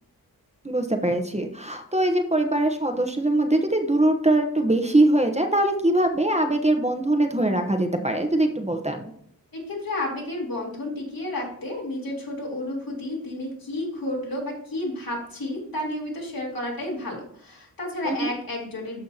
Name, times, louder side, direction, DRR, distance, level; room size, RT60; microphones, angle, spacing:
voice 1, 0.6-9.0 18.0-18.3, right 1 dB, 20° right, 4 dB, 1.0 m, -22 dB
voice 2, 9.5-19.0, left 1 dB, 70° left, -3 dB, 3.6 m, -31 dB
13.5 x 5.5 x 2.8 m, 0.68 s
wide cardioid pair, 75°, 37 cm